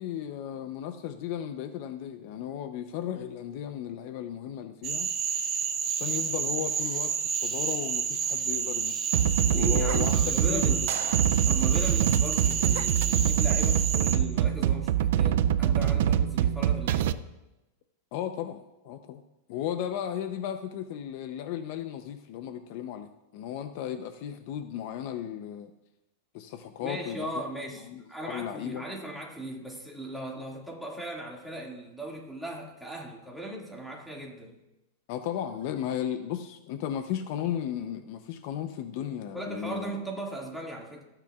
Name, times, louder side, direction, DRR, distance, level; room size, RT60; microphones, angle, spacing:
voice 1, 0.0-5.1 5.9-9.1 9.5-10.9 11.2-11.3 18.1-19.2 19.5-25.7 26.3-27.3 27.9-28.8 35.1-39.9, left 10 dB, 50° left, 9 dB, 0.6 m, -35 dB
Cricket / Frog, 4.8-14.1, right 7 dB, 25° right, 1.1 m, -30 dB
sound 1, 9.1-17.1, right 10 dB, 65° right, 0.4 m, -25 dB
voice 2, 9.4-10.9 11.4-17.2 26.8-34.6 39.3-41.0, right 1 dB, ahead, -2 dB, 2.0 m, -38 dB
26.0 x 8.9 x 2.4 m, 0.95 s
supercardioid pair, 155°, 0 cm